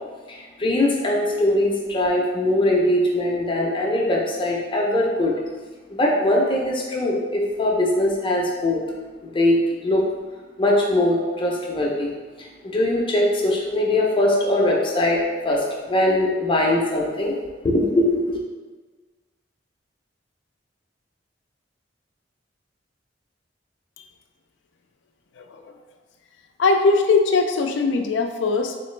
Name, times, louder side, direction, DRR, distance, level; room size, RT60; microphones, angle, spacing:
voice 1, 0.3-5.3 5.9-8.8 9.2-10.0 10.6-12.1 12.4-17.3 17.6-18.4, left 1 dB, 30° left, -2 dB, 0.6 m, -21 dB
voice 2, 25.4-25.7 26.6-28.8, left 4 dB, 75° left, 5 dB, 0.4 m, -20 dB
3.8 x 2.9 x 3.2 m, 1.4 s
head